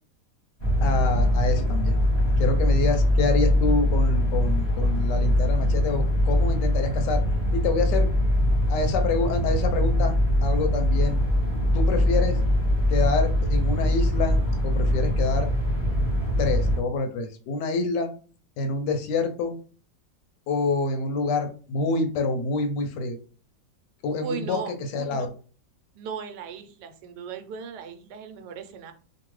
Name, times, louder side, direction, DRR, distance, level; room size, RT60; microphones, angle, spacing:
sound 1, 0.6-16.8, left 1 dB, 30° left, 0.9 m, -22 dB
voice 1, 0.8-1.9 2.4-7.2 7.5-8.1 8.7-11.2 11.7-12.4 12.9-14.4 14.6-15.5 16.4-18.1 18.6-19.6 20.5-23.2 24.0-24.6 24.9-25.3, left 3 dB, 85° left, 5 dB, 1.2 m, -27 dB
voice 2, 24.2-24.7 25.9-28.9, right 7 dB, 80° right, 7 dB, 1.1 m, -37 dB
2.8 x 2.4 x 3.0 m, 0.40 s
omnidirectional pair, 1.8 m